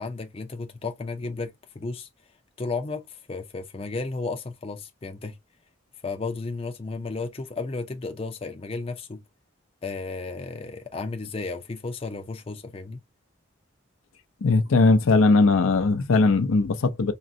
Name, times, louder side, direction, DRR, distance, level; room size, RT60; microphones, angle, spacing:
voice 1, 0.0-2.1 2.6-5.4 6.0-9.2 9.8-13.0, left 3 dB, 30° left, 0.4 m, -33 dB
voice 2, 14.4-17.1, left 3 dB, 85° left, 0.5 m, -19 dB
3.8 x 2.1 x 2.5 m
head